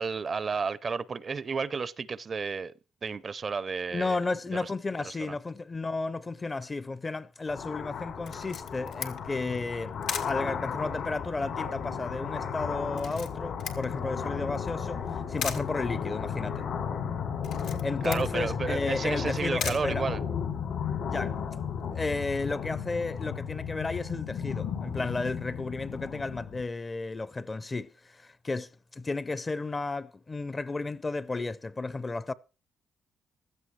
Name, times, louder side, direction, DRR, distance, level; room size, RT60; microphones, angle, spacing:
voice 1, 0.0-2.7 3.0-4.2 4.6-4.7 5.0-5.4 18.0-20.2, right 5 dB, 40° right, 0.5 m, -32 dB
voice 2, 3.9-9.9 10.2-16.7 17.6-20.1 21.1-21.3 21.9-32.3, left 3 dB, 25° left, 0.6 m, -33 dB
sound 1, 7.5-26.6, left 7 dB, 75° left, 3.2 m, -34 dB
Camera, 8.2-20.7, left 7 dB, 90° left, 1.9 m, -42 dB
16.0 x 13.0 x 3.2 m
cardioid pair, 90°, 0 cm